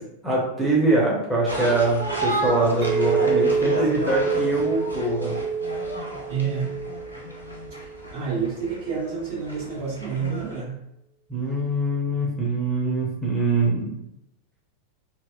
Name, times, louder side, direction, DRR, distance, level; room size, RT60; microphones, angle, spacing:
voice 1, 0.0-5.4 11.3-14.0, right 2 dB, 5° right, -6 dB, 0.7 m, -23 dB
sound 1, 1.5-10.6, right 1 dB, 90° left, 0.6 m, -32 dB
Chink clink, 2.8-8.0, right 5 dB, 35° right, 0.9 m, -27 dB
voice 2, 6.3-6.8 8.1-10.8, right 6 dB, 55° right, -7 dB, 1.4 m, -29 dB
2.7 x 2.1 x 2.3 m, 0.82 s
figure-of-eight pair, 90°, 0 cm